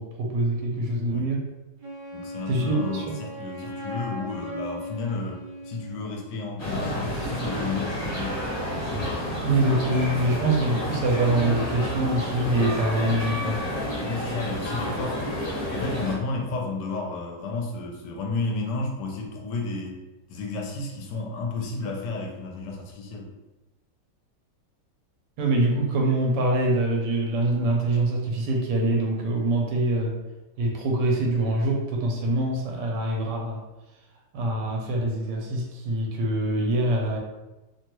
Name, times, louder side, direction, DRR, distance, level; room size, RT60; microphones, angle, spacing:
voice 1, 0.0-1.4 2.5-3.1 9.4-13.6 25.4-30.2 30.6-33.6 34.3-37.2, right 1 dB, 85° right, 0 dB, 1.2 m, -24 dB
Wind instrument woodwind instrument, 1.8-6.2, left 1 dB, 70° right, 1.1 m, -37 dB
voice 2, 2.1-8.5 14.0-15.4 15.7-20.0 20.3-23.3, left 3 dB, 75° left, 0 dB, 1.2 m, -32 dB
sound 1, 6.6-16.2, left 1 dB, 50° left, 1.1 m, -30 dB
3.0 x 2.2 x 2.9 m, 1.1 s
omnidirectional pair, 1.9 m